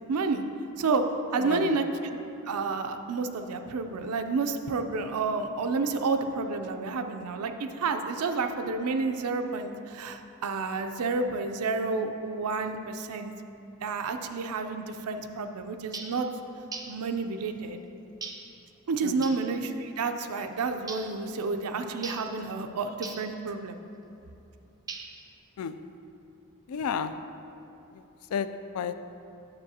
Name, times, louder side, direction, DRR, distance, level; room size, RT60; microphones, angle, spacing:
voice 1, 0.1-0.4 0.8-1.0 1.3-2.2 2.5-13.3 13.8-16.3 16.9-17.8 18.9-23.8, right 4 dB, 80° right, 6 dB, 0.5 m, -30 dB
voice 2, 1.4-1.8 19.0-19.3 25.6-25.7 26.7-27.1 28.3-28.5 28.7-28.9, left 7 dB, 65° left, 11 dB, 0.3 m, -31 dB
sound 1, 15.9-16.2 16.7-17.0 18.2-18.5 19.2-19.5 20.9-21.2 22.0-22.3 23.0-23.3 24.9-25.3, right 4 dB, 15° right, 0.4 m, -40 dB
9.7 x 6.6 x 2.8 m, 2.8 s
head